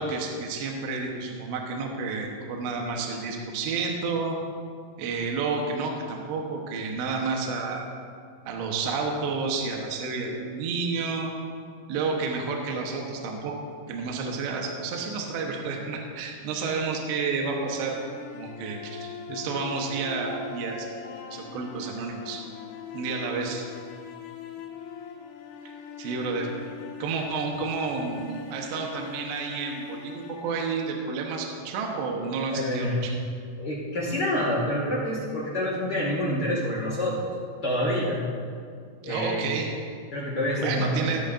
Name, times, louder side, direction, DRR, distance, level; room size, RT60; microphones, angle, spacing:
voice 1, 0.0-4.4 5.0-7.9 8.5-11.3 11.9-13.5 13.9-18.0 18.3-20.9 21.3-22.4 22.9-23.6 26.0-26.5 27.0-33.1 39.0-39.7 40.6-41.2, right 4 dB, 75° right, 1 dB, 3.0 m, -30 dB
sound 1, 17.5-31.6, left 6 dB, 90° left, 3.5 m, -41 dB
voice 2, 32.5-33.0 33.6-37.3 37.6-38.2 39.0-39.6 40.1-41.2, equal, 70° left, -7 dB, 1.0 m, -27 dB
19.0 x 11.0 x 2.6 m, 2.2 s
omnidirectional pair, 5.5 m